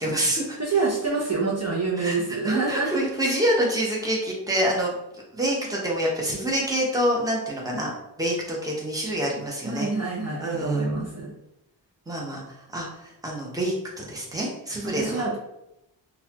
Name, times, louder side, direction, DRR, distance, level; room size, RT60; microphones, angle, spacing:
voice 1, 0.0-0.6 2.0-4.9 5.3-9.9 10.4-10.9 12.1-15.2, equal, 10° right, -3 dB, 0.9 m, -27 dB
voice 2, 0.6-2.9 9.6-11.3 14.9-15.4, right 3 dB, 35° right, -5 dB, 0.8 m, -26 dB
4.0 x 2.4 x 2.9 m, 0.86 s
wide cardioid pair, 55°, 44 cm